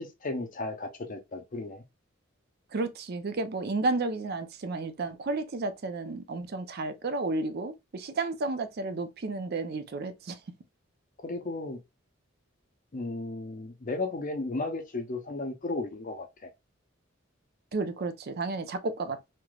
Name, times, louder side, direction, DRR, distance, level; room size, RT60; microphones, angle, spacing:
voice 1, 0.0-1.8 11.2-11.8 12.9-16.5, left 2 dB, 40° left, 0.6 m, -34 dB
voice 2, 2.7-10.4 17.7-19.3, right 3 dB, 50° right, 0.5 m, -32 dB
3.2 x 2.9 x 2.2 m
head